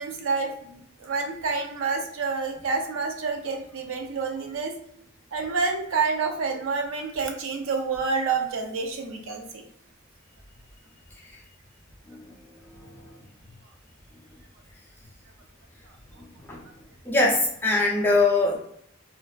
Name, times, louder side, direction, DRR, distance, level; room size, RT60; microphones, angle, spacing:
voice 1, 0.0-4.7 5.3-9.7, right 4 dB, 75° right, 3 dB, 0.4 m, -28 dB
voice 2, 17.1-18.6, left 2 dB, 10° left, -2 dB, 0.3 m, -22 dB
2.5 x 2.2 x 2.2 m, 0.70 s
head